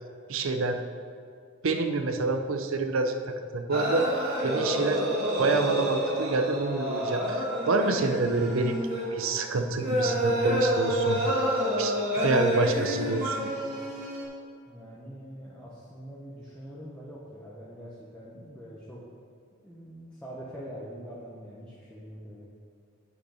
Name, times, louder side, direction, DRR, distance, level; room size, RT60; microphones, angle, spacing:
voice 1, 0.3-0.8 1.6-3.1 3.5-4.1 4.4-5.0 5.4-8.8 9.1-11.2 11.8-13.5, right 3 dB, 75° right, 6 dB, 0.7 m, -27 dB
sound 1, 3.7-14.2, equal, 45° right, 2.4 m, -28 dB
voice 2, 14.7-19.0 19.6-22.5, equal, 5° left, -8 dB, 1.0 m, -44 dB
8.5 x 6.5 x 4.9 m, 2.2 s
head